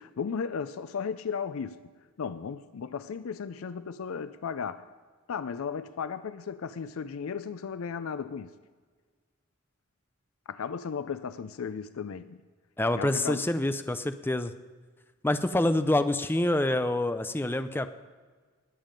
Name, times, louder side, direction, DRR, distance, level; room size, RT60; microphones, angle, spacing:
voice 1, 0.0-1.8 2.2-4.8 5.3-8.5 10.5-12.4 13.0-13.5, left 6 dB, 80° left, 13 dB, 0.4 m, -35 dB
voice 2, 12.8-14.5 15.2-17.9, left 1 dB, 10° left, 10 dB, 0.5 m, -26 dB
19.5 x 7.4 x 5.2 m, 1.5 s
head